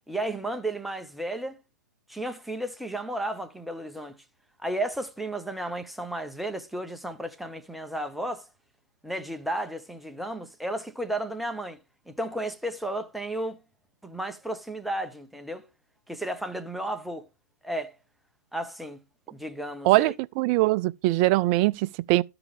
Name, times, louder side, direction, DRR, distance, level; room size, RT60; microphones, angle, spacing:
voice 1, 0.1-1.6 2.1-4.2 4.6-8.5 9.0-11.8 12.1-13.6 14.0-15.6 16.1-17.3 17.6-17.9 18.5-19.0 19.3-20.1, right 1 dB, ahead, 0.8 m, -33 dB
voice 2, 19.8-22.2, right 19 dB, 30° right, 0.4 m, -22 dB
13.0 x 4.8 x 3.6 m
hypercardioid pair, 130°, 10 cm